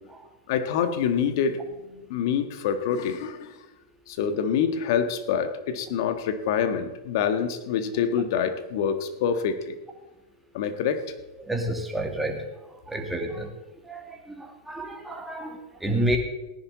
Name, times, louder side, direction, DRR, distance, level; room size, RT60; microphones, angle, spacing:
voice 1, 0.5-1.6 1.9-3.5 4.1-9.7 10.5-11.0, left 7 dB, 60° left, 9 dB, 1.6 m, -26 dB
voice 2, 11.4-12.5 12.9-13.5 13.9-16.2, right 1 dB, 5° right, 2 dB, 2.4 m, -30 dB
18.0 x 10.5 x 4.1 m, 1.1 s
hypercardioid pair, 110°, 2 cm